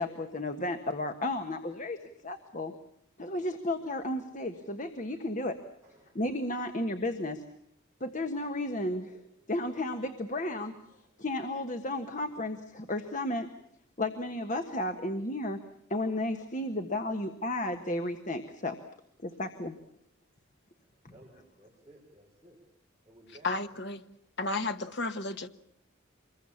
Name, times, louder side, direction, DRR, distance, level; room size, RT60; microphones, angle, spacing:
voice 1, 0.0-2.7 3.2-5.6 6.1-7.4 8.0-10.7 11.2-13.5 14.0-15.6 15.9-18.8 19.2-19.8, left 1 dB, 40° left, 7 dB, 1.5 m, -33 dB
voice 2, 5.8-6.2 8.0-8.1 10.9-11.2 17.2-17.3 19.3-19.4 21.1-22.6 23.0-23.8, right 1 dB, 15° right, -4 dB, 5.3 m, -58 dB
voice 3, 23.4-24.0 24.4-25.5, left 3 dB, 55° left, 8 dB, 1.4 m, -32 dB
26.0 x 22.5 x 7.2 m, 0.73 s
head